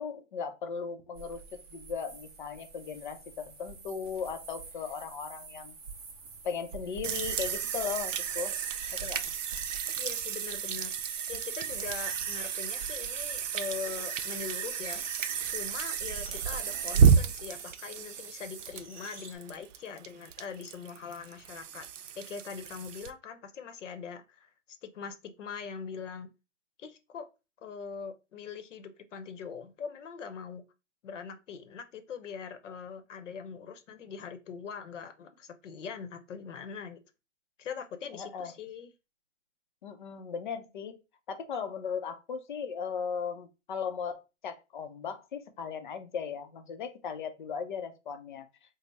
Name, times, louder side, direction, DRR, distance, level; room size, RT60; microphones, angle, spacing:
voice 1, 0.0-1.4 1.7-5.8 6.4-8.5 9.0-9.2 38.1-38.5 39.8-41.0 41.3-48.5, left 6 dB, 40° left, 0.5 m, -37 dB
sound 1, 1.1-17.0, right 4 dB, 30° right, 0.5 m, -49 dB
sound 2, 7.0-23.1, right 7 dB, 85° right, 0.5 m, -31 dB
sound 3, 8.8-19.3, right 2 dB, 5° right, 0.9 m, -49 dB
voice 2, 10.0-11.0 11.3-15.0 15.5-21.9 22.2-26.3 26.8-27.3 27.6-30.6 31.0-37.0 37.6-38.9, left 6 dB, 75° left, 0.7 m, -42 dB
3.3 x 2.0 x 3.9 m
hypercardioid pair, 160°, 37 cm